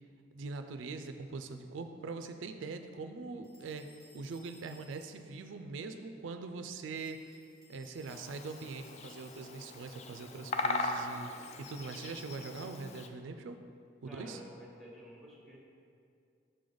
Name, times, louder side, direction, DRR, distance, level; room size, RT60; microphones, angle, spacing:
voice 1, 0.3-7.4 7.7-13.6 14.0-14.4, right 4 dB, 85° right, 7 dB, 0.4 m, -42 dB
sound 1, 3.4-5.4 6.9-9.7, left 1 dB, 55° left, 1.3 m, -62 dB
Bird vocalization bird call bird song, 8.1-13.1, left 3 dB, 35° left, 0.4 m, -39 dB
voice 2, 14.0-15.6, equal, ahead, -3 dB, 1.0 m, -51 dB
6.5 x 3.9 x 5.0 m, 2.4 s
head